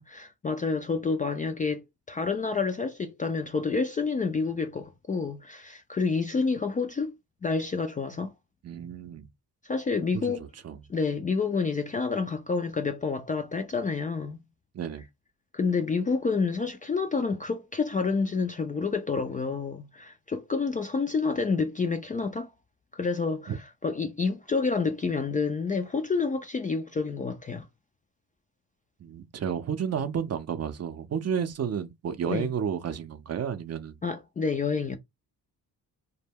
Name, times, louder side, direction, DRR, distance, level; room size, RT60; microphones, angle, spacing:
voice 1, 0.0-7.1 7.4-8.3 9.6-10.5 10.9-14.4 15.5-22.5 22.9-23.5 23.8-27.7 32.3-32.5 34.0-35.0, left 4 dB, 20° left, 0.3 m, -28 dB
voice 2, 8.6-9.3 10.2-10.8 14.7-15.0 23.5-23.6 29.0-34.0, right 8 dB, 40° right, 0.5 m, -31 dB
2.2 x 2.1 x 3.4 m
supercardioid pair, 65°, 39 cm